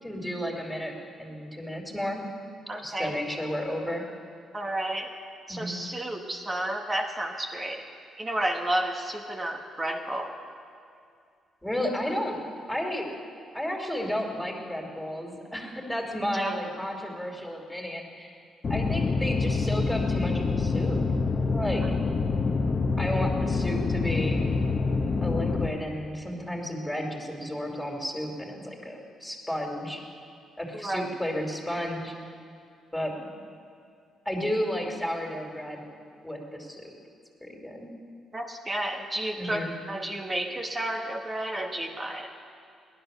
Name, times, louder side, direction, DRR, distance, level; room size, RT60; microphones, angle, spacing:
voice 1, 0.0-2.2 2.8-4.0 5.5-5.8 11.6-12.4 12.7-13.1 13.5-18.4 18.7-21.0 21.5-21.8 23.0-24.4 25.2-30.0 30.6-32.1 32.9-33.2 34.2-35.8 36.2-36.9 37.4-37.9 39.4-39.7, equal, 5° left, 1 dB, 2.9 m, -32 dB
voice 2, 2.7-3.2 4.5-5.1 5.5-7.8 8.2-10.4 16.3-16.6 30.7-31.1 38.3-42.3, right 1 dB, 20° right, 2 dB, 1.3 m, -31 dB
sound 1, 18.6-25.7, left 4 dB, 40° left, 1.0 m, -26 dB
18.0 x 11.0 x 6.8 m, 2.4 s
cardioid pair, 90°, 0 cm